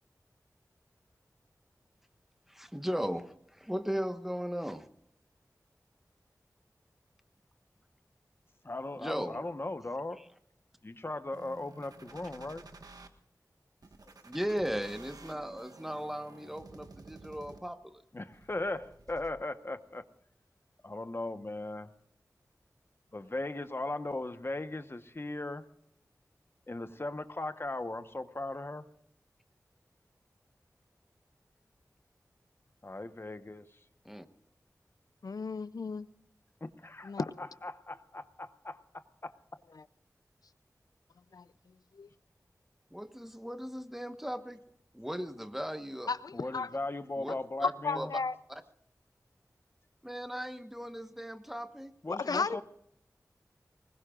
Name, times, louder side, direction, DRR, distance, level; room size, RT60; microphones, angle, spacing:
voice 1, 2.5-4.9 9.0-9.4 14.2-18.0 34.0-34.3 42.9-44.6 44.9-46.1 47.2-47.3 48.0-48.1 50.0-51.9, equal, 5° right, 1.3 m, -37 dB
voice 2, 8.6-10.2 10.8-12.6 14.1-14.2 18.1-20.1 20.8-21.9 23.1-25.7 26.7-28.9 32.8-33.8 36.6-39.4 46.3-48.1 52.0-52.6, left 2 dB, 40° left, 1.1 m, -38 dB
sound 1, 11.3-13.1 13.8-17.8 18.3-19.3, right 3 dB, 80° right, 1.5 m, -52 dB
voice 3, 35.2-36.1 37.0-37.2 39.8-39.9 41.3-41.5 41.9-42.1 46.1-46.7 47.8-48.4 52.1-52.6, left 4 dB, 90° left, 0.5 m, -34 dB
24.5 x 21.0 x 2.5 m
wide cardioid pair, 75°, 6 cm